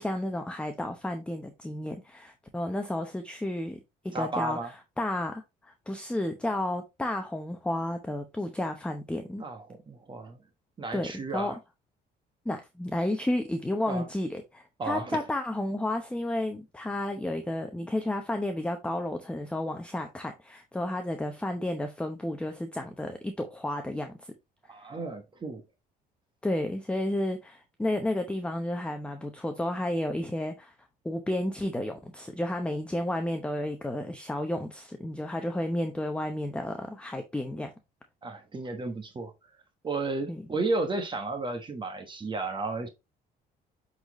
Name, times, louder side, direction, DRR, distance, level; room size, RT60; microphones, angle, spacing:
voice 1, 0.0-9.4 10.9-11.1 11.3-11.5 12.4-24.3 26.4-30.7 31.0-37.7 40.3-40.4, left 1 dB, 5° left, 0.8 m, -32 dB
voice 2, 4.1-4.7 9.4-10.4 10.8-11.6 13.9-14.1 14.8-15.2 24.7-25.6 38.2-39.3 39.8-42.9, right 3 dB, 30° right, 1.2 m, -33 dB
7.8 x 4.1 x 3.0 m
cardioid pair, 110°, 17 cm